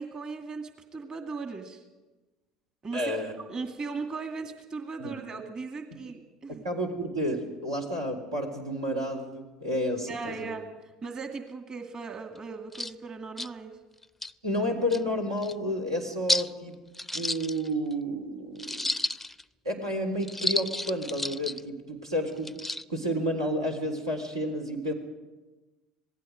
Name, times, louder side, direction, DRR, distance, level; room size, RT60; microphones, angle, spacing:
voice 1, 0.0-1.8 2.8-3.2 3.5-6.6 10.1-13.8, right 4 dB, 30° right, 5 dB, 2.2 m, -38 dB
voice 2, 2.9-3.3 5.0-5.2 5.9-6.0 6.6-10.6 14.4-16.7 17.1-18.9 19.6-22.5 22.9-24.9, equal, 80° right, 1 dB, 3.7 m, -31 dB
sound 1, 12.4-12.5 12.7-12.9 13.4-13.5 14.0-14.3 14.9-15.0 15.4-15.5 16.3-16.5 16.9-17.9 18.6-19.4 20.2-21.6 22.4-22.8, left 1 dB, 5° left, 0.6 m, -31 dB
26.5 x 18.5 x 5.2 m, 1.2 s
figure-of-eight pair, 65°, 3 cm